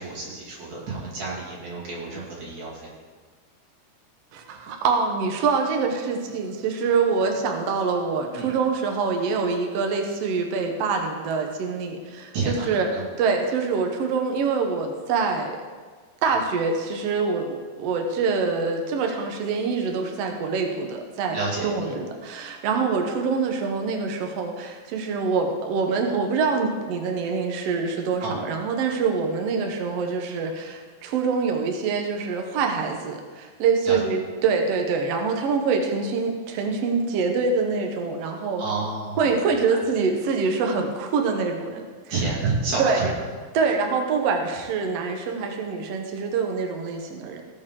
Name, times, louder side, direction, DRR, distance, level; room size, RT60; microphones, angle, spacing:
voice 1, 0.0-2.9 8.3-8.5 12.3-13.1 21.3-22.0 28.2-28.4 33.8-34.0 38.6-39.3 39.7-39.8 42.1-43.1, right 3 dB, 55° right, -4 dB, 3.6 m, -29 dB
voice 2, 4.3-12.9 13.2-15.6 16.2-38.6 39.2-41.9 42.8-43.1 43.5-47.4, right 5 dB, 75° right, 3 dB, 1.4 m, -25 dB
17.5 x 7.1 x 3.7 m, 1.5 s
omnidirectional pair, 4.2 m